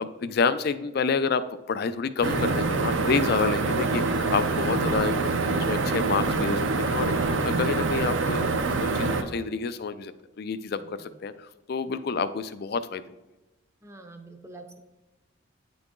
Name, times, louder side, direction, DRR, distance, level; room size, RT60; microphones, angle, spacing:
voice 1, 0.0-1.4 1.7-5.3 5.5-8.4 8.7-13.1, left 5 dB, 45° left, 12 dB, 0.3 m, -28 dB
sound 1, 2.2-9.2, right 3 dB, 60° right, 0.5 m, -25 dB
voice 2, 13.8-14.8, right 2 dB, 15° right, 5 dB, 0.6 m, -45 dB
9.1 x 3.9 x 3.7 m, 1.1 s
head